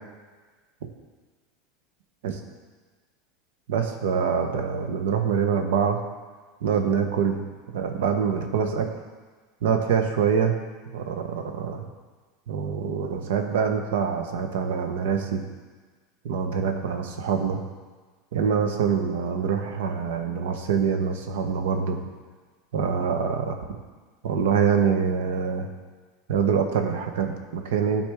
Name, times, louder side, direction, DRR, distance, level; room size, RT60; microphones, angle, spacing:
voice 1, 3.7-6.0 6.6-7.4 7.7-8.9 9.6-10.6 10.9-11.8 12.5-15.4 16.2-17.6 18.3-22.0 22.7-23.8 24.2-25.7 26.3-28.0, right 6 dB, 85° right, 5 dB, 0.9 m, -25 dB
11.5 x 4.3 x 3.5 m, 1.4 s
supercardioid pair, 125°, 0 cm